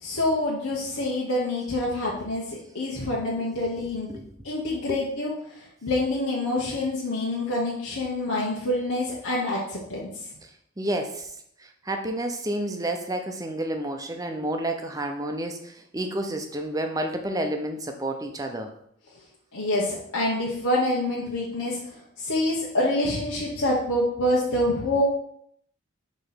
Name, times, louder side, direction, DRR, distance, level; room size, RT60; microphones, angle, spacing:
voice 1, 0.0-4.1 4.4-5.3 5.8-10.1 19.5-21.8 22.2-25.0, left 1 dB, 85° left, -5 dB, 1.2 m, -26 dB
voice 2, 3.8-4.3 4.9-5.0 10.8-11.3 11.6-18.7, right 1 dB, 15° right, 5 dB, 0.6 m, -30 dB
6.6 x 3.1 x 6.0 m, 0.70 s
head